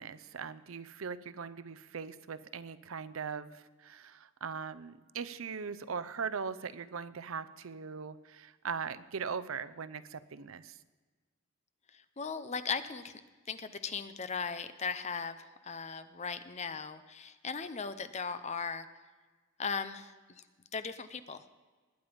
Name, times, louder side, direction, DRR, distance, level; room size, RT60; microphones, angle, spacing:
voice 1, 0.0-10.8, right 6 dB, 80° right, 14 dB, 0.6 m, -40 dB
voice 2, 12.2-13.1 13.5-18.9 19.6-20.1 20.7-21.4, left 5 dB, 35° left, 11 dB, 0.7 m, -37 dB
20.5 x 9.0 x 5.2 m, 1.3 s
head